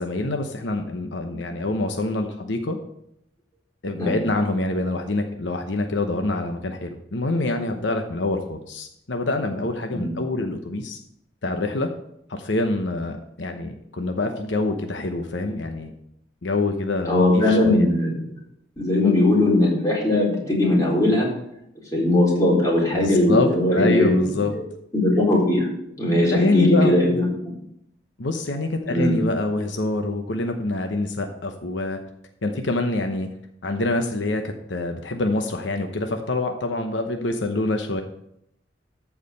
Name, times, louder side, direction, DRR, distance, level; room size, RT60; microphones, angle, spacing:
voice 1, 0.0-2.8 3.8-11.0 11.4-11.9 12.3-15.9 16.4-17.9 22.9-24.5 26.3-27.2 28.2-32.0 32.4-33.3 33.6-38.0, left 2 dB, 80° left, 5 dB, 1.0 m, -26 dB
voice 2, 17.1-18.1 18.8-21.3 21.9-24.1 24.5-24.6 24.9-25.7 26.0-27.2 28.9-29.2, left 1 dB, 20° left, -4 dB, 4.1 m, -19 dB
14.0 x 4.9 x 6.6 m, 0.76 s
head